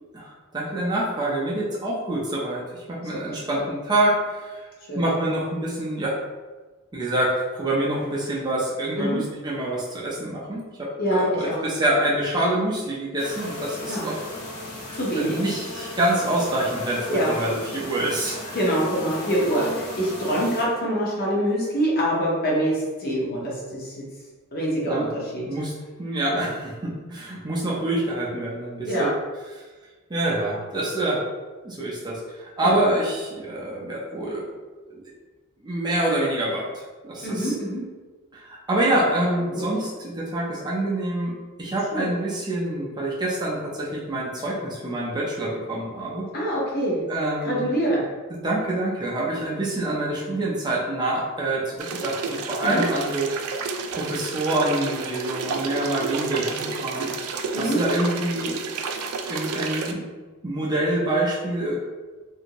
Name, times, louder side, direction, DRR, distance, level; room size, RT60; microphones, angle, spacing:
voice 1, 0.1-4.7 4.9-6.2 6.9-14.1 15.2-18.4 24.9-25.1 25.5-25.7 26.0-29.1 29.6-29.7 30.1-31.2 31.6-34.5 34.8-35.0 35.6-37.5 38.3-41.3 41.6-46.3 47.1-47.7 48.3-53.6 53.9-57.1 57.6-58.6 59.3-60.0 60.4-61.7, right 1 dB, 20° right, -5 dB, 0.4 m, -26 dB
voice 2, 3.1-3.6 4.9-5.0 9.0-9.2 11.0-11.6 13.8-14.1 14.9-15.4 17.1-17.3 18.5-24.0 24.5-25.5 26.3-26.5 28.9-29.1 32.6-32.7 37.2-37.8 39.5-39.6 41.9-42.1 46.3-47.0 47.4-48.1 52.6-52.8 57.5-57.8, equal, 45° left, -5 dB, 0.9 m, -25 dB
sound 1, 13.2-20.7, left 1 dB, 85° left, 0.8 m, -36 dB
sound 2, 51.8-59.9, right 4 dB, 80° right, 0.3 m, -31 dB
2.6 x 2.5 x 2.9 m, 1.3 s
head